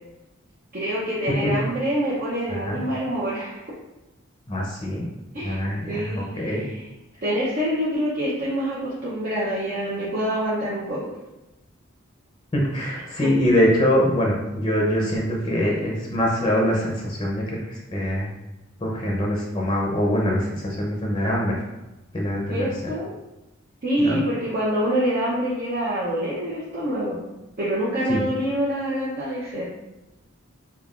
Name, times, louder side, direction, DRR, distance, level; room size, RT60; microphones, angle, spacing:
voice 1, 0.7-3.6 5.3-5.6 5.9-6.8 7.2-11.1 13.2-13.3 22.5-23.2 23.8-27.3 27.6-29.7, equal, 45° right, -8 dB, 0.7 m, -26 dB
voice 2, 4.5-5.1 5.4-6.6 12.5-18.3 18.8-21.6 22.1-22.6 24.0-24.2 28.1-28.2, equal, 25° left, -2 dB, 0.6 m, -23 dB
5.2 x 2.3 x 2.4 m, 0.98 s
head